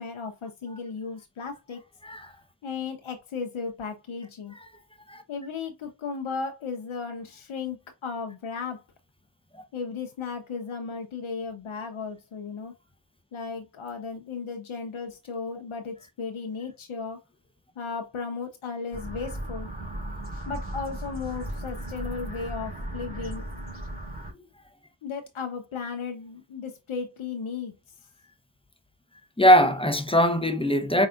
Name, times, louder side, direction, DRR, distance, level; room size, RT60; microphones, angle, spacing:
voice 1, 0.0-1.8 2.6-4.6 5.3-8.8 9.7-12.7 13.3-17.2 17.8-19.7 20.5-23.5 25.0-27.7, left 5 dB, 85° left, 0.8 m, -35 dB
sound 1, 18.9-24.3, right 1 dB, 20° right, 3.0 m, -36 dB
voice 2, 29.4-31.1, equal, 10° left, 0.7 m, -21 dB
5.0 x 4.0 x 2.4 m
wide cardioid pair, 65°, 48 cm